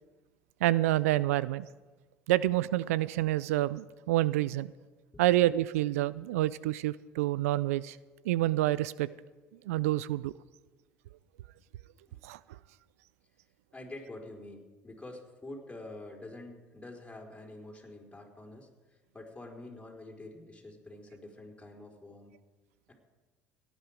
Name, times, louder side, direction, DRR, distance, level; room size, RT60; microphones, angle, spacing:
voice 1, 0.6-1.7 2.3-4.7 5.2-8.0 8.3-9.1 9.7-10.3 12.2-12.4, right 15 dB, 80° right, 19 dB, 0.4 m, -28 dB
voice 2, 13.7-22.3, left 2 dB, 15° left, 0 dB, 4.2 m, -47 dB
17.5 x 11.0 x 5.1 m, 1.2 s
hypercardioid pair, 65°, 8 cm